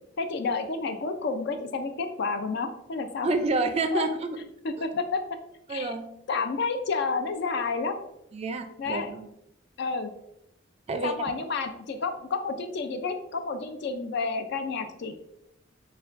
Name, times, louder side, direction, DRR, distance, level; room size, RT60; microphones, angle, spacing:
voice 1, 0.2-3.3 3.9-4.0 4.8-5.2 5.7-5.9 6.3-8.0 8.8-9.1 9.8-10.1 11.0-15.2, left 4 dB, 60° left, 7 dB, 0.5 m, -30 dB
voice 2, 3.2-4.3 5.7-6.1 8.3-9.3 10.9-11.1, right 3 dB, 30° right, 8 dB, 0.4 m, -28 dB
6.6 x 2.3 x 2.5 m, 0.80 s
head